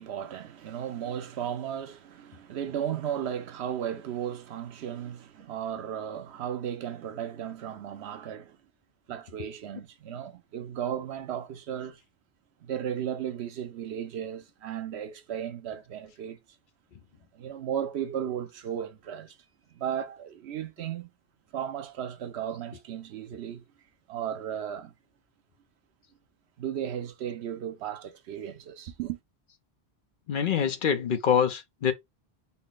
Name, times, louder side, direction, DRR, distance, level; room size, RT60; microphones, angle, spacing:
voice 1, 0.0-8.6 9.1-12.0 12.6-16.4 17.3-19.4 19.7-21.1 21.5-23.6 24.1-24.9 26.6-29.2, right 9 dB, 85° right, 0.9 m, -35 dB
voice 2, 30.3-31.9, left 8 dB, 60° left, 0.7 m, -25 dB
4.1 x 2.0 x 3.8 m
omnidirectional pair, 1.1 m